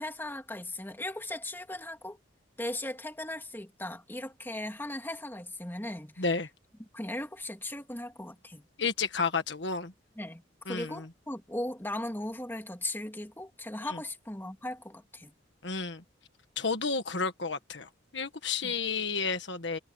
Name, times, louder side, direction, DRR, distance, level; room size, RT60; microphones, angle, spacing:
voice 1, 0.0-2.2 2.6-6.3 6.9-8.6 10.2-15.3 18.6-18.7, left 1 dB, 10° left, 2.6 m, -38 dB
voice 2, 6.2-6.5 8.8-9.9 10.7-11.1 13.8-14.0 15.6-16.0 16.6-19.8, left 4 dB, 65° left, 1.6 m, -31 dB
head